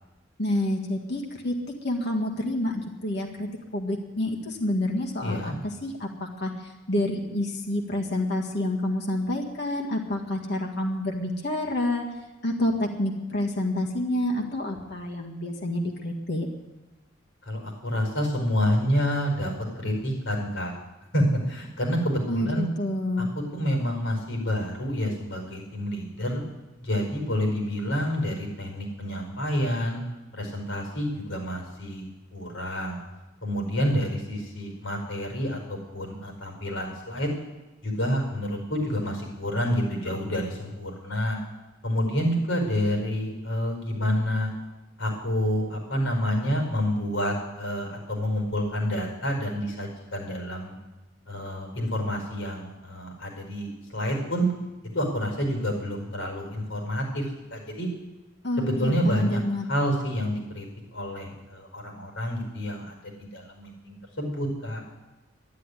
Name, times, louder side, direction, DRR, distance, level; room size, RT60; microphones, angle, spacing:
voice 1, 0.4-1.5 1.8-6.1 6.4-12.0 12.4-16.5 22.3-23.3 58.4-59.7, left 1 dB, 60° left, 0 dB, 1.9 m, -28 dB
voice 2, 5.2-5.6 17.4-20.7 21.1-22.6 23.5-26.4 26.8-30.0 30.3-32.1 32.3-33.0 33.4-37.3 37.8-41.4 41.8-44.5 45.0-50.7 51.3-54.5 54.9-57.2 57.5-57.9 58.6-59.4 59.7-60.7 60.9-62.9 63.2-64.8, equal, 75° left, 2 dB, 5.2 m, -28 dB
11.5 x 11.5 x 9.9 m, 1.1 s
head